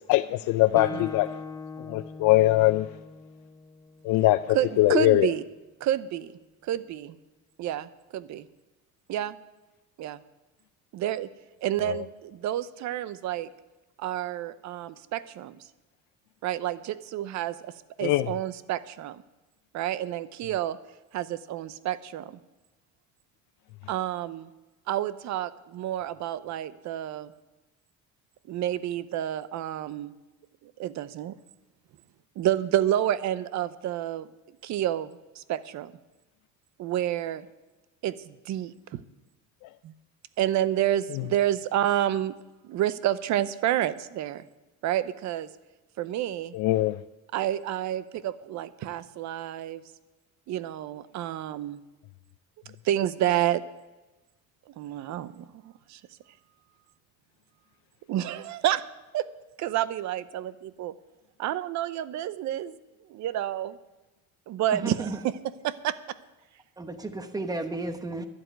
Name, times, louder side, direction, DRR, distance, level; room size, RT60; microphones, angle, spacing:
voice 1, 0.1-1.3 1.9-2.9 4.0-5.3 18.0-18.3 46.5-47.0, left 16 dB, 85° left, 0.5 m, -22 dB
Guitar, 0.7-4.4, left 4 dB, 10° left, 0.5 m, -40 dB
voice 2, 0.7-1.1 4.5-5.4 5.8-6.3 6.6-7.2 7.6-8.5 9.1-9.4 10.0-10.2 10.9-11.3 11.6-13.5 14.0-15.7 16.4-17.7 18.0-19.2 19.7-20.8 21.1-22.4 23.9-24.5 24.9-27.3 28.5-30.1 30.6-31.3 32.4-34.3 34.6-35.9 36.8-37.5 38.0-39.0 39.8-39.9 40.4-42.3 42.6-44.5 44.8-45.5 46.0-46.5 47.3-49.8 50.5-51.8 52.8-53.6 54.7-56.0 58.1-58.8 59.1-59.3 59.6-60.9 61.4-62.8 63.1-63.8 64.5-65.4 65.6-66.2 68.2-68.3, right 12 dB, 65° right, 0.7 m, -29 dB
voice 3, 64.7-65.2 66.8-68.2, right 2 dB, 10° right, 1.0 m, -33 dB
11.5 x 7.8 x 9.2 m
cardioid pair, 145°, 31 cm